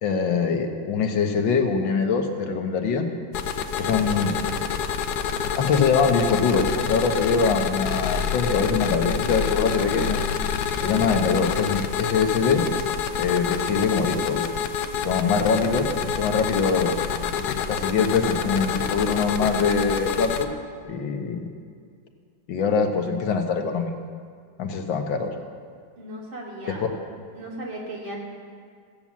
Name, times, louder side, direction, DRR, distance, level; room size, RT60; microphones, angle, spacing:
voice 1, 0.0-3.1 3.8-4.4 5.6-10.2 10.7-12.7 13.1-14.5 14.9-17.0 17.3-20.5 20.9-21.5 22.5-23.9 24.6-25.4, left 5 dB, 80° left, 4 dB, 1.9 m, -23 dB
sound 1, 3.3-20.4, left 7 dB, 65° left, 1.2 m, -27 dB
voice 2, 26.0-27.0 27.3-28.2, right 1 dB, 85° right, -3 dB, 3.4 m, -36 dB
15.5 x 8.7 x 7.3 m, 2.1 s
omnidirectional pair, 2.1 m